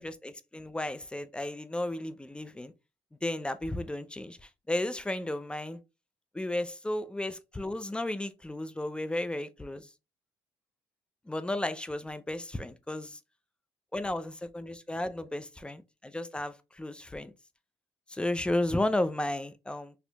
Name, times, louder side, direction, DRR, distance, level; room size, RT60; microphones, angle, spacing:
voice 1, 0.0-2.7 3.2-5.8 6.3-9.9 11.3-13.2 13.9-17.3 18.1-19.9, left 1 dB, 10° left, 0.4 m, -33 dB
4.3 x 2.7 x 2.2 m
cardioid pair, 100°, 12 cm